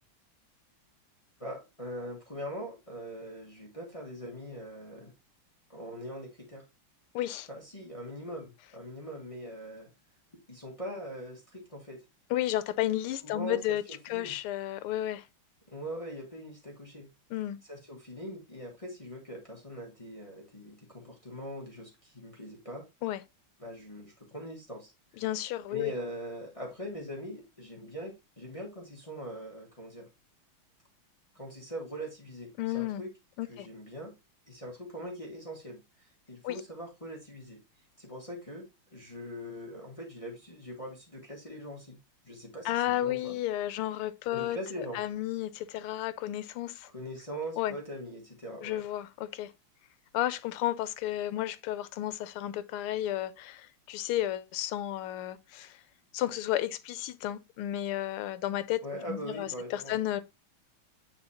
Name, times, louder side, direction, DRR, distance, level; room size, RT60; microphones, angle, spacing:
voice 1, 1.4-5.1 5.7-6.6 7.5-9.9 10.5-12.0 13.2-14.3 15.7-17.1 17.7-22.8 23.6-24.9 25.7-30.1 31.3-33.1 33.5-34.1 34.5-37.6 38.0-38.6 38.9-42.0 42.2-43.3 44.3-45.0 46.9-48.8 58.8-60.0, equal, 20° left, 1.4 m, -42 dB
voice 2, 7.1-7.5 12.3-15.2 17.3-17.6 23.0-23.2 25.2-25.9 32.6-33.0 33.4-33.7 36.4-36.6 42.6-46.9 47.6-47.7 48.6-49.5 50.1-55.8 56.1-58.8 59.1-60.2, left 13 dB, 85° left, 1.5 m, -32 dB
8.8 x 4.1 x 2.8 m
omnidirectional pair, 2.4 m